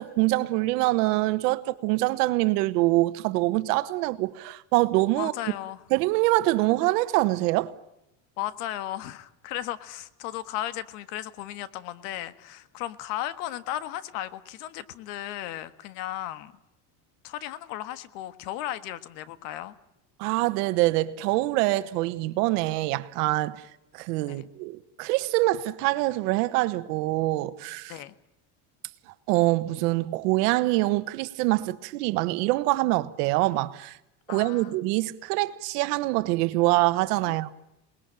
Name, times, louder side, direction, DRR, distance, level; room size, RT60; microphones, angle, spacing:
voice 1, 0.0-5.3 5.9-7.7 20.2-23.6 23.9-27.9 29.3-34.0 34.3-37.5, right 19 dB, 90° right, 1.4 m, -25 dB
voice 2, 5.1-5.8 8.4-16.6 17.2-19.7 24.2-24.5 27.9-28.1 34.3-34.7 37.3-37.4, left 13 dB, 85° left, 1.7 m, -35 dB
27.5 x 20.5 x 9.0 m
cardioid pair, 125°, 46 cm